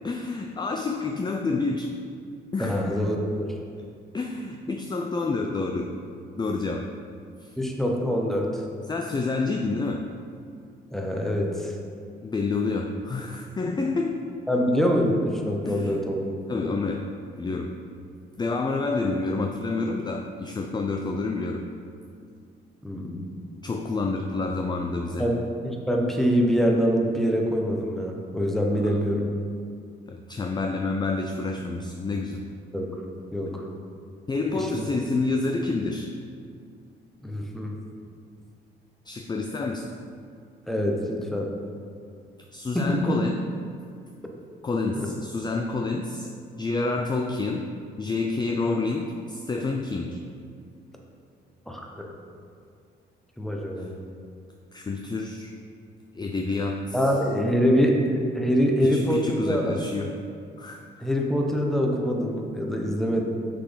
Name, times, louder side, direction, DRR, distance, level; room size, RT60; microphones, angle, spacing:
voice 1, 0.0-1.9 2.5-3.0 4.1-5.9 6.4-6.9 7.4-7.5 8.9-10.0 12.2-14.2 15.6-16.0 16.5-17.0 17.4-17.7 18.4-21.6 23.6-25.3 28.7-29.0 30.1-32.4 34.3-36.1 39.1-39.9 42.5-43.4 44.6-46.3 46.6-47.6 48.0-50.2 54.7-55.5 56.1-57.0 58.8-60.1 60.6-60.8, left 3 dB, 20° left, 3 dB, 0.4 m, -28 dB
voice 2, 2.6-3.5 7.6-8.6 10.9-11.8 14.5-16.3 22.8-23.2 25.2-29.3 32.7-33.0 33.3-33.7 34.5-34.8 37.2-37.8 40.7-41.5 42.7-43.2 44.9-45.1 51.7-52.1 53.4-54.0 56.9-59.8 61.0-63.2, equal, ahead, 0 dB, 1.0 m, -25 dB
6.5 x 6.0 x 3.9 m, 2.3 s
cardioid pair, 90°, 20 cm